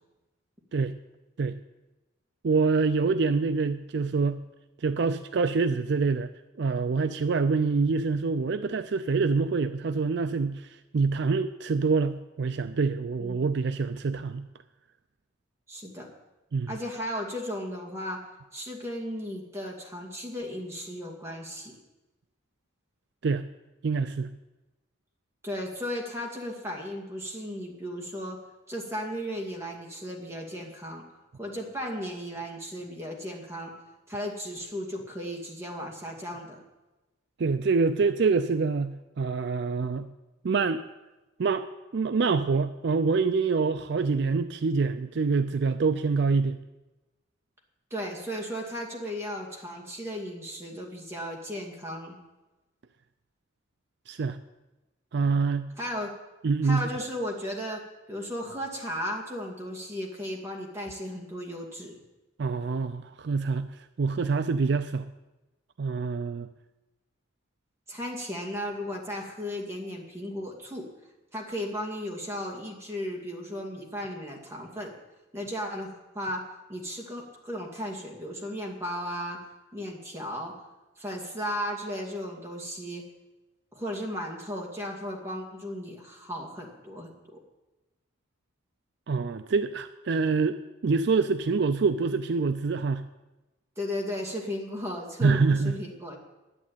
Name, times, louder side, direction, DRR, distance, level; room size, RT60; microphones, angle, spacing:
voice 1, 2.4-4.4 4.8-6.3 6.6-14.5 16.5-16.7 23.2-23.4 23.8-24.3 37.4-40.1 40.4-40.8 41.4-41.7 41.9-46.6 54.1-54.4 55.1-55.7 56.4-56.9 62.4-63.7 64.0-65.1 65.8-66.5 89.1-90.6 90.8-93.0 95.2-95.8, right 4 dB, 60° right, 11 dB, 0.4 m, -26 dB
voice 2, 13.2-13.5 15.7-16.1 16.7-18.2 18.5-21.8 25.4-28.4 28.7-31.0 31.4-33.7 34.1-36.6 47.9-52.1 55.8-56.1 56.6-57.8 58.1-61.9 67.9-70.9 71.3-74.9 75.3-76.4 76.7-79.4 79.7-80.5 81.0-83.0 83.7-87.4 93.8-96.2, equal, 15° right, 0 dB, 2.4 m, -35 dB
11.0 x 8.3 x 9.1 m, 1.1 s
head